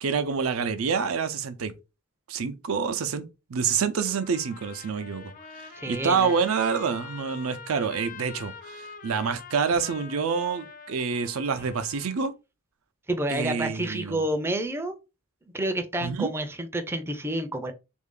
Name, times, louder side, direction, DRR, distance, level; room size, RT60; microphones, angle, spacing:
voice 1, 0.0-1.7 2.3-12.3 13.3-14.2 16.0-16.3, right 5 dB, 85° right, 0.5 m, -27 dB
Trumpet, 4.1-12.2, left 5 dB, 40° left, 0.6 m, -45 dB
voice 2, 5.8-6.3 13.1-15.0 15.5-17.7, right 1 dB, 10° right, 0.4 m, -29 dB
3.2 x 2.5 x 3.6 m
head